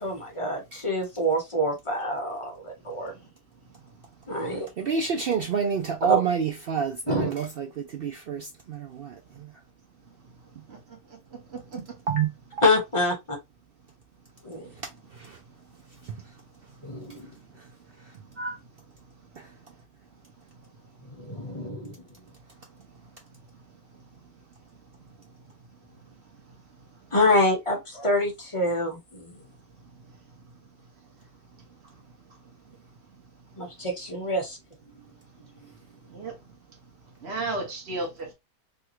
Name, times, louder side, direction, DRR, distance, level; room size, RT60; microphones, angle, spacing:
voice 1, 0.0-3.2 4.3-4.7 6.1-6.2 7.1-7.3 12.6-13.4 14.4-14.6 16.8-17.3 21.2-22.0 27.1-29.4 33.6-34.6, left 1 dB, 25° left, 1.0 m, -26 dB
voice 2, 4.8-9.2 12.1-12.3 15.3-15.4 18.4-18.5, right 7 dB, 70° right, 0.5 m, -27 dB
voice 3, 37.2-38.3, right 2 dB, 50° right, 1.3 m, -33 dB
3.4 x 2.3 x 2.9 m
omnidirectional pair, 1.5 m